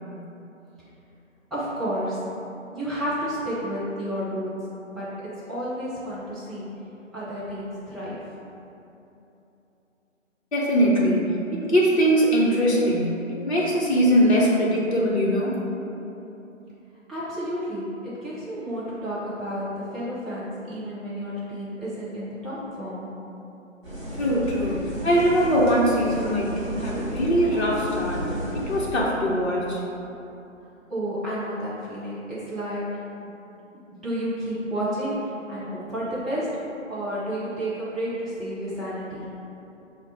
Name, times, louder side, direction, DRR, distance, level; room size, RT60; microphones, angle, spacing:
voice 1, 1.5-2.2 2.7-5.2 5.5-6.8 7.1-8.2 17.1-23.1 30.9-33.3 33.9-36.6 36.9-39.2, equal, ahead, -12 dB, 0.4 m, -31 dB
voice 2, 10.5-15.5 24.2-28.3 28.5-29.8, equal, 55° left, -5 dB, 0.7 m, -22 dB
sound 1, 23.8-28.9, equal, 20° right, 1.2 m, -32 dB
4.5 x 2.1 x 4.0 m, 3.0 s
figure-of-eight pair, 155°, 39 cm